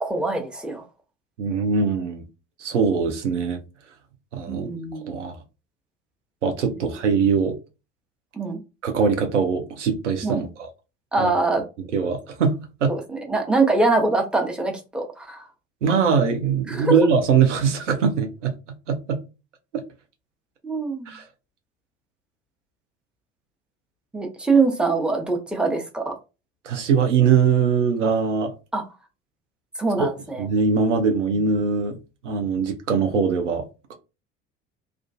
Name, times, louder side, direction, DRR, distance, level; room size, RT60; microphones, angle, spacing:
voice 1, 0.0-0.8 4.5-5.1 8.3-8.6 10.2-10.4 11.1-11.6 12.9-15.5 16.7-16.9 20.6-21.2 24.1-26.1 28.7-28.8 29.8-30.5, right 3 dB, 5° right, 0.7 m, -23 dB
voice 2, 1.4-2.2 2.6-3.6 4.3-4.7 5.1-5.4 6.4-7.6 8.8-10.7 11.2-11.3 11.9-12.6 12.8-12.9 15.8-18.5 18.9-19.2 19.7-19.8 21.1-21.2 26.6-28.5 30.0-30.1 30.4-32.0 32.2-33.6 33.9-34.0, right 6 dB, 85° right, 0.6 m, -21 dB
2.4 x 2.3 x 2.2 m
figure-of-eight pair, 60°, 35 cm